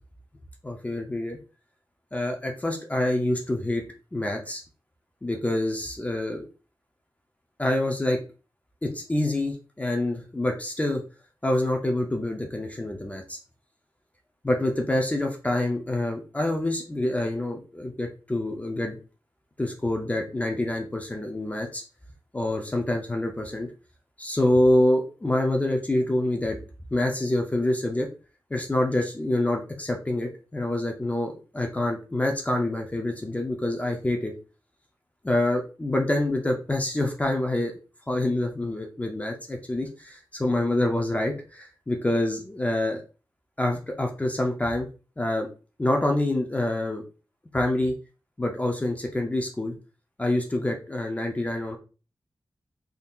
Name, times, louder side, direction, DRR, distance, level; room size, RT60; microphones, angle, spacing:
voice 1, 0.6-1.4 2.1-3.8 4.1-4.6 5.2-6.4 7.6-8.2 8.8-11.0 11.4-13.4 14.4-19.0 19.6-21.8 22.3-23.7 24.2-26.6 26.9-28.1 28.5-34.3 35.2-37.7 38.1-43.0 43.6-44.9 45.2-45.5 45.8-47.0 47.5-47.9 48.4-49.7 50.2-51.8, left 1 dB, 15° left, 2 dB, 0.5 m, -26 dB
3.6 x 2.7 x 2.3 m, 0.34 s
wide cardioid pair, 105°, 8 cm